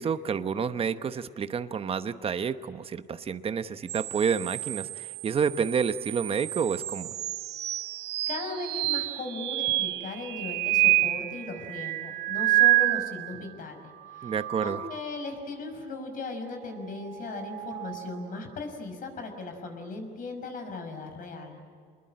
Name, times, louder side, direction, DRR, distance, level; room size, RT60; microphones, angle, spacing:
voice 1, 0.0-7.1 14.2-14.8, right 6 dB, 35° right, 11 dB, 1.0 m, -29 dB
sound 1, 3.9-13.4 13.9-15.3 17.1-18.2, right 18 dB, 80° right, 1.2 m, -29 dB
voice 2, 8.3-13.8 14.1-14.3 14.6-21.6, left 3 dB, 55° left, 5 dB, 5.9 m, -37 dB
26.5 x 21.0 x 8.9 m, 2.2 s
cardioid pair, 110°, 17 cm